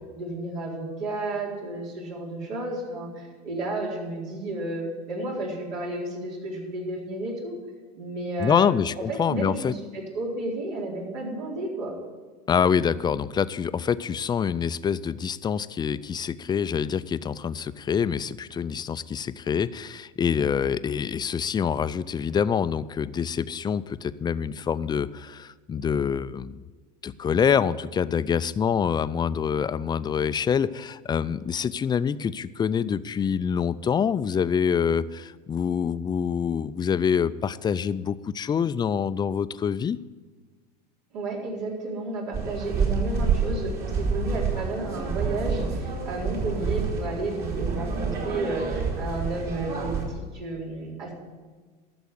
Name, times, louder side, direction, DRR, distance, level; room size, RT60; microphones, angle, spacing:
voice 1, 0.1-7.6 8.0-8.7 9.0-11.9 41.1-51.1, right 2 dB, 75° right, -3 dB, 4.2 m, -32 dB
voice 2, 8.4-9.7 12.5-26.6 27.0-40.0, left 7 dB, 20° left, 15 dB, 0.4 m, -26 dB
sound 1, 42.3-50.1, right 5 dB, 50° right, 3.4 m, -28 dB
12.5 x 7.0 x 8.2 m, 1.4 s
hypercardioid pair, 95°, 21 cm